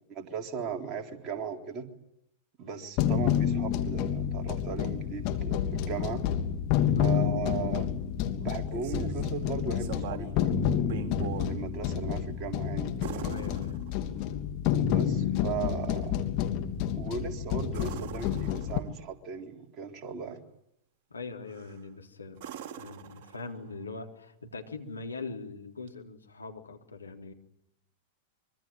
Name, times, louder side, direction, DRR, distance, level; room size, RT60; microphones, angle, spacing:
voice 1, 0.0-1.9 2.6-6.2 7.0-7.9 8.4-11.0 11.4-13.4 14.9-16.2 16.9-20.4, right 6 dB, 30° right, 2 dB, 3.7 m, -37 dB
sound 1, 3.0-18.8, left 9 dB, 45° left, 3.0 m, -29 dB
sound 2, 8.5-9.3 9.8-10.4 10.8-11.5 13.0-14.3 17.7-19.0 21.5-21.9 22.4-23.8 25.9-26.0, right 9 dB, 50° right, 3.8 m, -42 dB
voice 2, 13.2-13.8 14.2-14.5 17.1-17.3 21.1-22.4 22.8-27.3, left 3 dB, 80° left, 3 dB, 3.6 m, -42 dB
25.0 x 24.0 x 9.2 m, 0.78 s
figure-of-eight pair, 95°, 0 cm